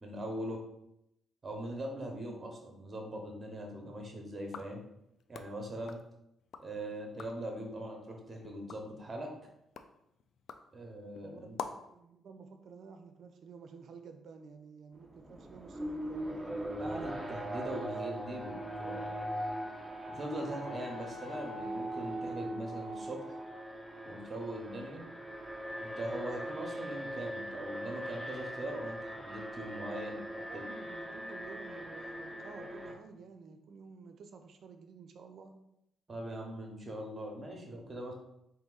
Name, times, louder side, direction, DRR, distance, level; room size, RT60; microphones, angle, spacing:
voice 1, 0.0-0.6 1.4-4.8 5.3-6.0 6.6-9.3 10.7-11.5 16.8-19.2 20.1-23.4 24.0-25.0 25.8-30.6 36.1-38.1, right 1 dB, 25° right, 1 dB, 0.9 m, -41 dB
sound 1, 4.4-6.7 7.0-7.5 8.0-12.0, left 6 dB, 60° left, 0.3 m, -48 dB
voice 2, 11.2-16.7 30.5-35.5, right 5 dB, 55° right, 7 dB, 0.5 m, -52 dB
Alarm, 15.0-32.9, right 1 dB, 10° right, 0.5 m, -40 dB
4.0 x 2.7 x 3.8 m, 0.81 s
cardioid pair, 130°, 0 cm